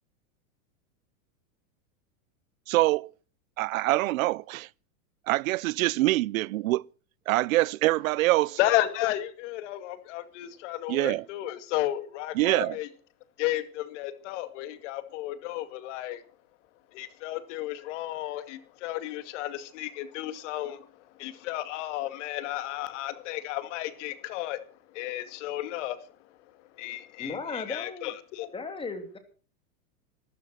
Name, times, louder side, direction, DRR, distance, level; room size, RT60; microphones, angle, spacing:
voice 1, 2.7-3.1 3.6-4.7 5.3-6.8 7.3-8.6 10.9-11.2 12.4-12.8, right 18 dB, 65° right, 0.6 m, -25 dB
voice 2, 8.6-12.9 13.4-16.2 16.9-20.9 21.2-26.1 26.7-28.5, left 14 dB, 55° left, 2.3 m, -33 dB
voice 3, 27.2-28.1 28.5-29.2, left 4 dB, 10° left, 2.7 m, -35 dB
13.0 x 13.0 x 6.1 m
supercardioid pair, 140°, 43 cm